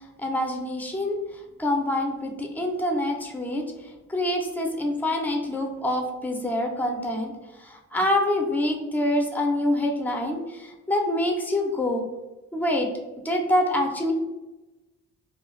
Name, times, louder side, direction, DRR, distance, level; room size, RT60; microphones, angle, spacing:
voice 1, 0.2-1.2 1.6-3.6 4.1-7.3 7.6-12.0 12.5-12.9 13.2-14.1, left 1 dB, 5° left, 2 dB, 0.5 m, -26 dB
2.7 x 2.2 x 3.1 m, 1.1 s
cardioid pair, 90°, 30 cm